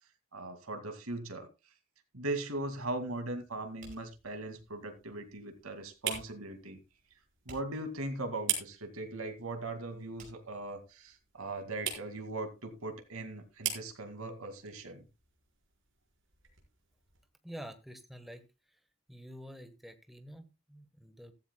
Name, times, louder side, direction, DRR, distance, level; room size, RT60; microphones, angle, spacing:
voice 1, 0.3-1.5 2.1-6.8 7.5-15.0, right 2 dB, 90° right, 6 dB, 2.2 m, -39 dB
sound 1, 2.5-17.3, right 9 dB, 65° right, 4.6 m, -44 dB
sound 2, 3.8-11.5, right 2 dB, 35° right, 5.1 m, -57 dB
voice 2, 17.4-18.4 19.1-21.3, equal, ahead, 8 dB, 1.3 m, -48 dB
14.0 x 14.0 x 2.3 m, 0.27 s
head